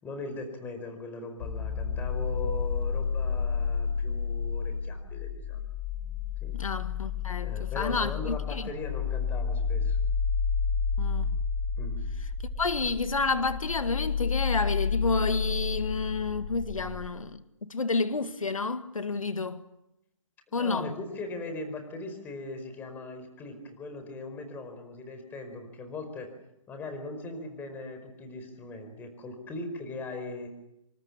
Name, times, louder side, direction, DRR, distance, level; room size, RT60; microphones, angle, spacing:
voice 1, 0.0-5.6 6.4-6.6 7.4-10.0 11.8-12.1 20.5-26.3 26.7-30.5, left 3 dB, 10° left, 4.7 m, -39 dB
sound 1, 1.4-17.1, left 5 dB, 35° left, 4.7 m, -30 dB
voice 2, 6.5-8.7 11.0-11.4 12.6-19.6 20.5-20.9, left 3 dB, 85° left, 2.0 m, -30 dB
27.5 x 26.0 x 7.3 m
hypercardioid pair, 150°, 17 cm